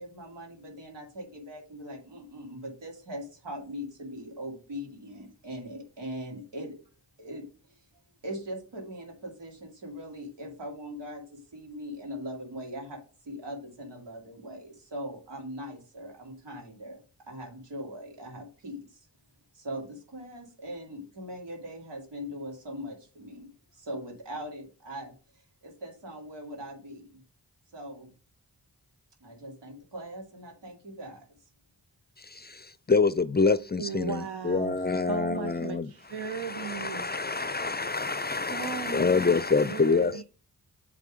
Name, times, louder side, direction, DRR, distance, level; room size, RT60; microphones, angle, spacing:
voice 1, 0.0-6.8 7.2-7.8 8.2-17.0 17.3-19.1 19.5-23.5 23.7-27.2 27.7-28.1 29.2-31.3, equal, 90° right, 2.5 m, -41 dB
voice 2, 32.9-35.9 36.5-40.1, left 4 dB, 25° left, 0.4 m, -26 dB
voice 3, 33.8-37.0 38.5-39.4 39.7-40.2, right 7 dB, 70° right, 0.8 m, -37 dB
8.2 x 3.6 x 4.9 m
cardioid pair, 45°, 41 cm